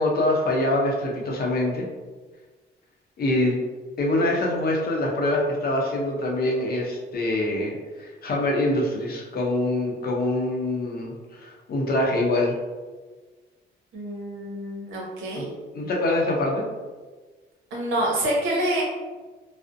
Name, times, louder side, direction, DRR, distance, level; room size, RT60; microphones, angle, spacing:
voice 1, 0.0-1.9 3.2-3.6 4.0-12.6 15.4-16.6, left 1 dB, 50° left, -1 dB, 0.6 m, -24 dB
voice 2, 13.9-15.5 17.7-18.8, right 1 dB, 80° right, -3 dB, 0.8 m, -27 dB
2.5 x 2.0 x 2.5 m, 1.3 s
cardioid pair, 90°, 20 cm